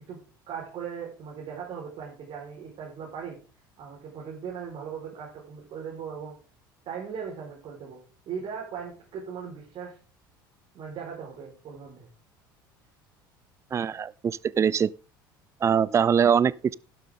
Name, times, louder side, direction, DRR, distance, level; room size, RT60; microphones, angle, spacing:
voice 1, 0.5-3.4 3.8-6.4 6.8-8.0 8.2-10.0 10.7-12.1, right 7 dB, 50° right, 4.8 m, -38 dB
voice 2, 13.7-14.9 15.6-16.7, right 7 dB, 25° right, 0.4 m, -23 dB
11.5 x 11.5 x 3.8 m
hypercardioid pair, 65°, 11 cm